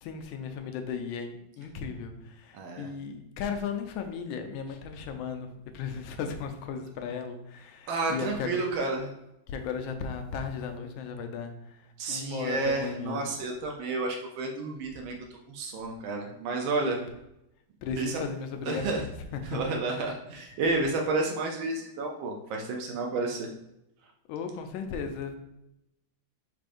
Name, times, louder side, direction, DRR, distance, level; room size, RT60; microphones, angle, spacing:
voice 1, 0.0-5.5 5.7-8.6 9.5-11.8 12.1-13.3 16.8-16.9 17.8-19.1 19.5-19.6 19.9-20.1 24.3-25.4, left 6 dB, 85° left, 6 dB, 1.4 m, -36 dB
voice 2, 2.5-2.9 7.9-9.1 12.0-15.1 15.5-17.0 18.0-18.2 18.6-19.0 19.4-23.5, right 3 dB, 90° right, 1 dB, 1.5 m, -31 dB
4.4 x 2.5 x 4.8 m, 0.86 s
omnidirectional pair, 2.1 m